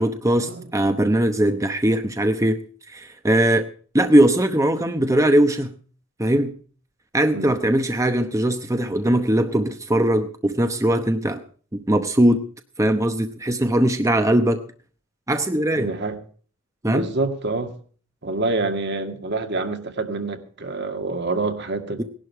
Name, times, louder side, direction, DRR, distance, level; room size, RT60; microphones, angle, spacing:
voice 1, 0.0-2.6 2.9-3.7 3.9-5.7 6.2-6.5 7.1-11.4 11.7-12.4 12.8-14.6 15.3-15.9 16.8-17.1, right 1 dB, 15° right, 0.9 m, -20 dB
voice 2, 15.7-16.2 16.8-17.7 18.2-22.0, right 2 dB, 55° right, 2.0 m, -27 dB
18.5 x 11.5 x 4.7 m
head